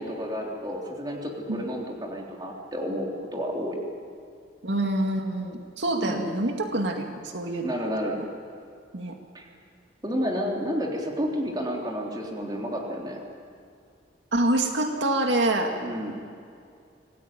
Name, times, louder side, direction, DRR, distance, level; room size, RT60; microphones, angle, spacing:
voice 1, 0.0-3.8 6.0-6.2 7.6-8.2 9.3-9.5 10.0-13.2 15.8-16.2, equal, 20° right, -1 dB, 3.6 m, -31 dB
voice 2, 4.6-7.7 8.1-8.2 8.9-9.1 14.3-15.7, right 1 dB, 75° right, 3 dB, 2.2 m, -26 dB
26.5 x 18.5 x 9.3 m, 2.4 s
head